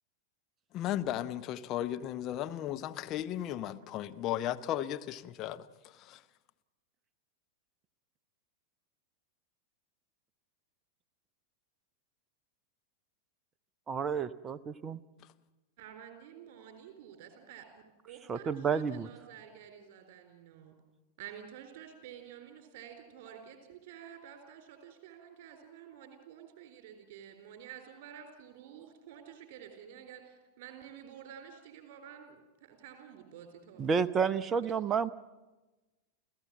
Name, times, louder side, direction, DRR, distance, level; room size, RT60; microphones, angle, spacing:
voice 1, 0.7-5.7 5.9-6.2, left 12 dB, 35° left, 0.8 m, -35 dB
voice 2, 13.9-15.0 18.3-19.1 33.8-35.1, right 6 dB, 25° right, 0.7 m, -30 dB
voice 3, 15.8-20.7 21.2-33.9, right 9 dB, 45° right, 4.0 m, -50 dB
29.5 x 15.0 x 7.6 m
figure-of-eight pair, 90°, 0 cm